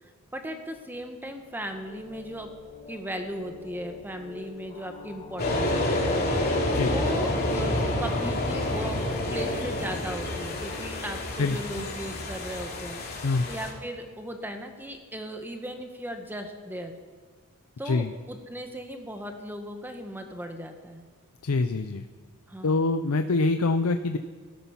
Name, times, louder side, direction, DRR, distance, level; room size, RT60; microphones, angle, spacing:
voice 1, 0.0-2.5 2.9-6.1 6.8-9.0 9.3-16.9 17.8-21.0 22.5-22.9, equal, 10° right, 5 dB, 1.1 m, -37 dB
sound 1, 1.4-12.9, left 4 dB, 25° left, 4.8 m, -46 dB
sound 2, 5.4-13.7, left 1 dB, 45° left, 2.8 m, -28 dB
voice 2, 11.4-11.8 13.2-13.5 17.8-18.1 21.4-22.1 22.6-24.2, left 3 dB, 70° left, 9 dB, 0.6 m, -25 dB
18.5 x 12.5 x 5.8 m, 1.5 s
head